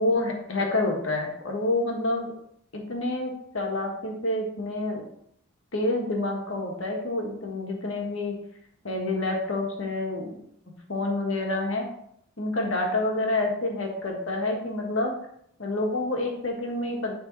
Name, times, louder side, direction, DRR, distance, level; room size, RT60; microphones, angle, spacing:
voice 1, 0.0-2.3 2.7-5.0 5.7-8.3 8.8-10.4 10.9-11.9 12.4-15.1 15.6-17.1, left 2 dB, 80° left, 1 dB, 1.6 m, -28 dB
10.5 x 3.7 x 4.1 m, 0.71 s
head